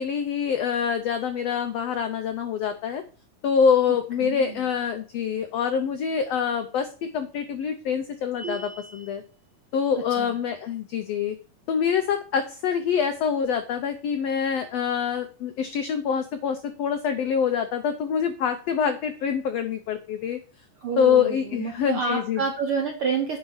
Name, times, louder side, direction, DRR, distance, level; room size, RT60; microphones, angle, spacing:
voice 1, 0.0-3.0 3.4-9.2 9.7-11.3 11.7-20.4 21.0-22.4, left 7 dB, 90° left, 7 dB, 1.4 m, -25 dB
voice 2, 4.2-4.7 10.1-10.4 20.8-23.4, right 5 dB, 70° right, 3 dB, 1.3 m, -28 dB
sound 1, 8.3-9.2, right 4 dB, 55° right, 2.2 m, -38 dB
9.3 x 4.8 x 5.7 m, 0.38 s
omnidirectional pair, 3.8 m